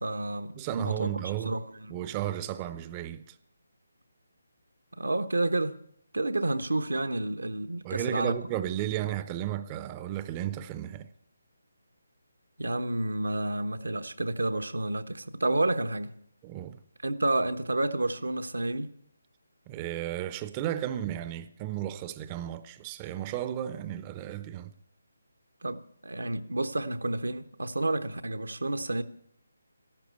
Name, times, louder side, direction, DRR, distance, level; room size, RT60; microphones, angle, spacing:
voice 1, 0.0-1.1 1.4-2.0 5.0-5.8 6.1-8.3 12.6-16.1 17.0-18.9 25.6-29.0, right 2 dB, 85° right, 1.1 m, -30 dB
voice 2, 0.5-1.5 1.9-3.4 7.8-11.1 16.4-16.8 19.7-24.7, right 12 dB, 20° right, 0.6 m, -34 dB
14.0 x 12.0 x 8.3 m
figure-of-eight pair, 155°, 0 cm